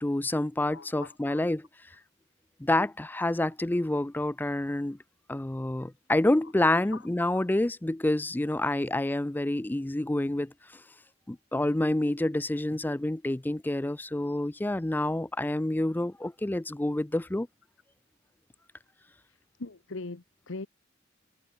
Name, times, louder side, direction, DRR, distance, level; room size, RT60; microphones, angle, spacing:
voice 1, 0.0-1.7 2.6-5.0 5.3-10.5 11.3-17.5, left 1 dB, 10° left, 0.4 m, -28 dB
voice 2, 0.7-1.4 6.9-7.0 7.3-7.4 19.6-20.7, left 3 dB, 70° left, 1.1 m, -41 dB
head